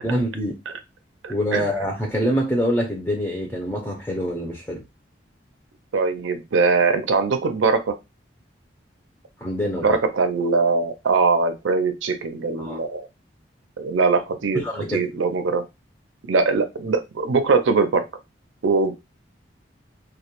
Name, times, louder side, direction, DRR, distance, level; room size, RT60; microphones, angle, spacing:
voice 1, 0.0-0.6 1.3-4.8 9.4-9.9 12.6-12.8 14.6-15.0, equal, 10° left, 0.4 m, -25 dB
voice 2, 1.2-1.7 5.9-7.9 9.8-13.1 13.8-14.6 14.9-15.6 16.3-18.0 18.6-18.9, right 4 dB, 90° right, 0.5 m, -21 dB
2.2 x 2.1 x 2.9 m
head